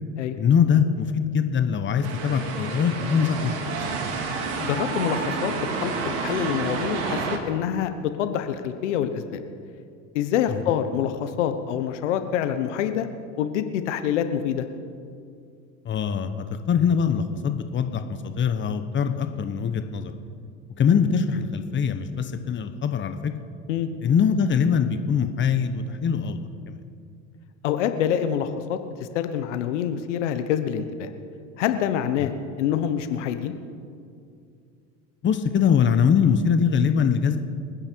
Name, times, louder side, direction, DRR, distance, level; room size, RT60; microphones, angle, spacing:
voice 1, 0.4-3.5 3.9-4.0 10.5-10.6 15.8-20.1 20.8-23.3 24.0-26.8 32.2-32.3 35.2-37.4, left 7 dB, 35° left, 8 dB, 1.2 m, -23 dB
sound 1, 2.0-7.4, right 4 dB, 75° right, 2.5 m, -29 dB
voice 2, 4.6-9.4 10.1-13.1 13.4-14.7 23.7-23.9 27.6-31.1 31.6-33.5, left 9 dB, 85° left, 9 dB, 1.1 m, -26 dB
25.5 x 9.9 x 4.6 m, 2.4 s
supercardioid pair, 90°, 35 cm